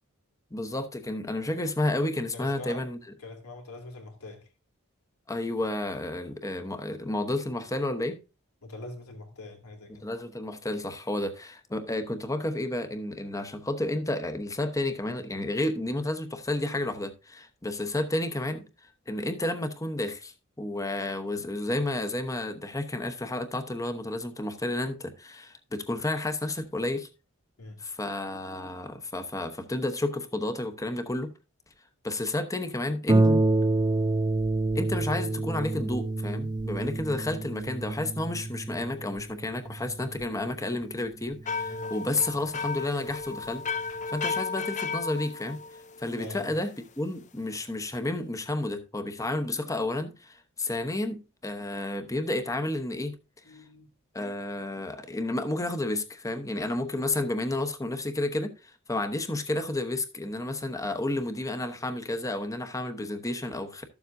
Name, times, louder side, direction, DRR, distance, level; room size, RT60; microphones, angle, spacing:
voice 1, 0.5-3.0 5.3-8.2 10.0-18.6 19.1-27.1 27.8-31.3 32.0-33.4 34.7-45.6 46.0-46.7 47.0-53.2 54.1-63.8, left 2 dB, 15° left, 0.9 m, -31 dB
voice 2, 2.3-2.8 3.2-4.5 8.6-10.1 27.6-27.8 41.7-41.9 46.2-46.5 53.4-53.9, left 2 dB, 90° left, 2.6 m, -43 dB
Harp, 33.1-42.3 43.1-43.2 43.7-43.8, right 2 dB, 20° right, 0.4 m, -28 dB
sound 1, 41.5-46.4, left 4 dB, 35° left, 0.5 m, -34 dB
13.0 x 7.2 x 2.6 m
head